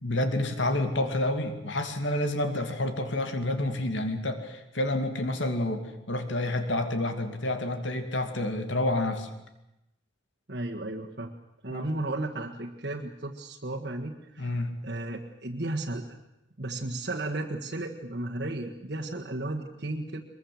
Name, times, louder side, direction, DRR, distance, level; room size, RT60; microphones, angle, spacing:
voice 1, 0.0-5.8 6.1-9.3 11.7-11.8 14.4-14.7, left 1 dB, 75° left, 7 dB, 2.7 m, -29 dB
voice 2, 10.5-11.3 11.6-14.5 14.8-16.2 16.6-20.2, right 2 dB, 55° right, -1 dB, 1.7 m, -34 dB
23.5 x 22.0 x 7.8 m, 0.90 s
head